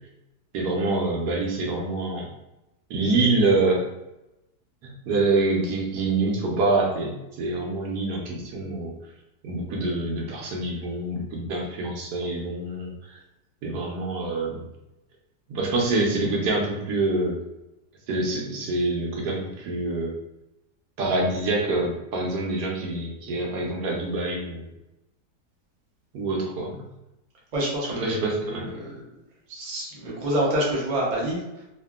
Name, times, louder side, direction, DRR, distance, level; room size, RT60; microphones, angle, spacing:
voice 1, 0.5-2.3 2.9-3.9 5.0-8.9 9.4-13.2 13.6-14.6 15.5-17.4 18.1-20.1 21.0-24.7 26.1-26.8 28.0-28.7, right 2 dB, 75° right, -1 dB, 1.2 m, -26 dB
voice 2, 27.5-29.0 29.5-31.6, right 1 dB, 45° right, -5 dB, 0.5 m, -27 dB
2.8 x 2.5 x 2.3 m, 0.92 s
omnidirectional pair, 1.8 m